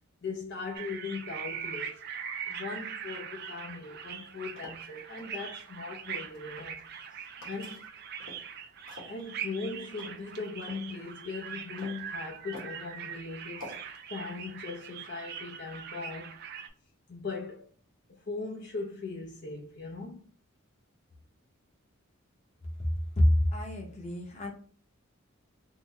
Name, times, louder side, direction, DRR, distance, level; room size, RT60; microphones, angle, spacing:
voice 1, 0.2-2.1 2.5-6.8 7.4-7.8 9.0-13.8 14.1-16.4 17.1-17.7 18.1-20.2, left 4 dB, 55° left, 0.6 m, -39 dB
sound 1, 0.7-16.7, right 7 dB, 50° right, 0.3 m, -42 dB
sound 2, 4.2-5.3 6.2-7.0 7.4-8.5 8.9-10.8 11.3-12.1 12.5-12.9 13.6-14.0, left 2 dB, 70° left, 1.4 m, -48 dB
voice 2, 23.2-24.5, left 1 dB, 30° left, 0.9 m, -26 dB
3.8 x 2.1 x 3.3 m
head